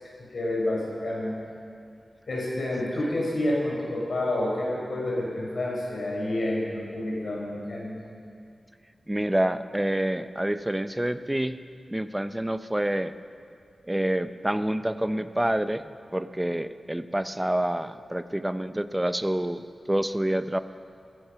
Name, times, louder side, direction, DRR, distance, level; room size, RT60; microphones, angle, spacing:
voice 1, 0.3-1.4 2.3-8.0, left 1 dB, 65° left, -4 dB, 4.8 m, -29 dB
voice 2, 9.1-11.6 11.9-13.1 13.9-15.8 16.1-20.6, right 1 dB, 10° right, 12 dB, 0.5 m, -27 dB
15.0 x 14.5 x 5.8 m, 2.3 s
wide cardioid pair, 95°, 0 cm